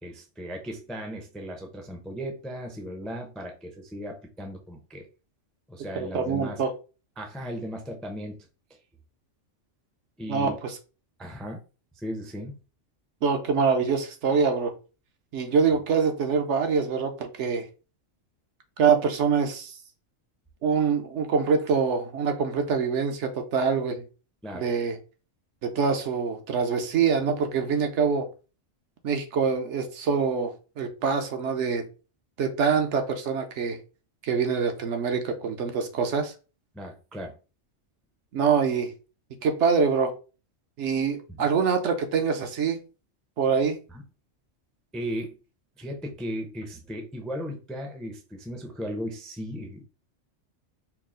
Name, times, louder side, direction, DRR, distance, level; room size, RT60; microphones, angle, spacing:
voice 1, 0.0-5.1 5.7-6.6 7.2-8.5 10.2-10.5 11.2-11.6 12.0-12.6 24.4-24.6 36.7-37.3 41.3-41.4 43.9-44.0 44.9-45.3 45.8-49.8, equal, ahead, 3 dB, 0.4 m, -36 dB
voice 2, 5.9-6.7 10.3-10.8 13.2-14.7 15.3-17.6 18.8-19.8 20.6-24.0 24.5-25.0 25.6-28.3 29.0-31.8 32.4-33.8 34.2-36.3 38.3-38.9 39.4-40.1 40.8-42.8 43.4-43.8, right 5 dB, 70° right, 6 dB, 1.0 m, -25 dB
4.5 x 2.0 x 3.7 m, 0.33 s
omnidirectional pair, 1.3 m